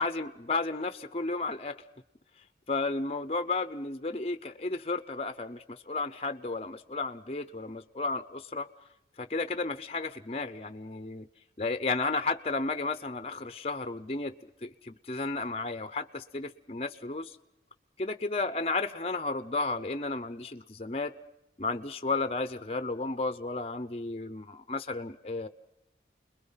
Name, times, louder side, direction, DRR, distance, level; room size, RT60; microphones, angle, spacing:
voice 1, 0.0-1.8 2.7-8.7 9.2-11.3 11.6-14.3 14.6-17.4 18.0-21.1 21.6-25.5, left 3 dB, 35° left, 10 dB, 0.7 m, -33 dB
29.5 x 21.5 x 5.7 m, 0.88 s
head